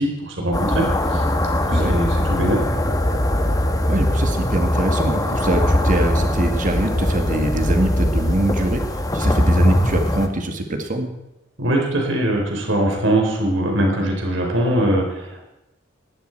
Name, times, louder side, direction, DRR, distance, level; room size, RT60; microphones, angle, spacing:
voice 1, 0.0-2.6 11.6-15.4, right 1 dB, 80° right, 1 dB, 4.2 m, -22 dB
sound 1, 0.5-10.3, left 1 dB, 20° left, 1.2 m, -20 dB
voice 2, 3.9-8.8 9.1-11.1, right 1 dB, 40° right, 5 dB, 1.8 m, -23 dB
18.0 x 12.0 x 4.6 m, 0.93 s
head